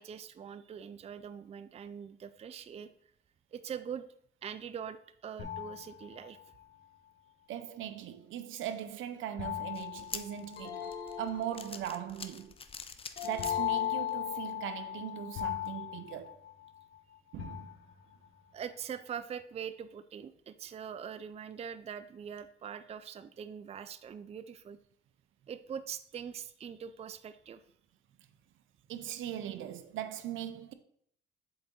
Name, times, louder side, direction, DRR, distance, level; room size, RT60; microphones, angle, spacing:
voice 1, 0.0-2.9 3.5-4.1 4.4-6.4 18.5-24.8 25.5-27.6, right 8 dB, 30° right, 0.4 m, -43 dB
sound 1, 5.4-6.6 9.4-11.0 13.4-17.0 17.4-18.3, left 13 dB, 80° left, 1.1 m, -37 dB
voice 2, 7.5-10.9 11.2-12.5 13.2-16.4 17.3-17.7 28.9-30.7, right 11 dB, 80° right, 0.6 m, -39 dB
sound 2, 9.7-14.1 14.6-14.7 15.7-15.8, left 5 dB, 30° left, 0.5 m, -46 dB
sound 3, 10.6-12.1 13.2-14.7, left 7 dB, 55° left, 1.3 m, -44 dB
7.7 x 3.9 x 3.7 m
cardioid pair, 90°, 20 cm